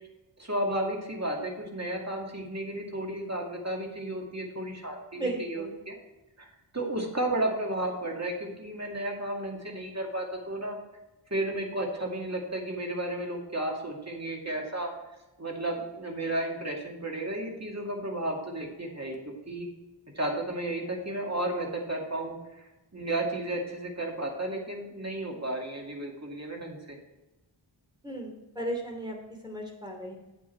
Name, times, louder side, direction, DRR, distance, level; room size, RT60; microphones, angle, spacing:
voice 1, 0.4-6.0 6.4-10.8 11.3-14.9 15.4-19.2 19.5-19.7 20.1-22.4 22.9-27.0, right 1 dB, 35° right, 0 dB, 2.3 m, -33 dB
voice 2, 5.2-5.7 28.0-29.2 29.4-30.1, right 1 dB, 10° right, 1 dB, 2.8 m, -35 dB
8.7 x 8.4 x 4.5 m, 1.1 s
wide cardioid pair, 55°, 47 cm